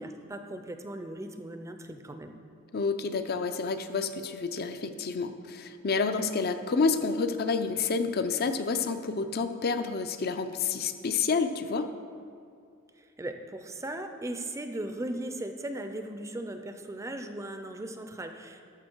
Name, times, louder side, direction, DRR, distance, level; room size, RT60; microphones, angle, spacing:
voice 1, 0.0-2.3 13.0-18.6, right 1 dB, 15° right, 7 dB, 0.5 m, -38 dB
voice 2, 2.7-11.9, left 4 dB, 45° left, 9 dB, 0.5 m, -29 dB
12.5 x 6.3 x 4.5 m, 2.4 s
head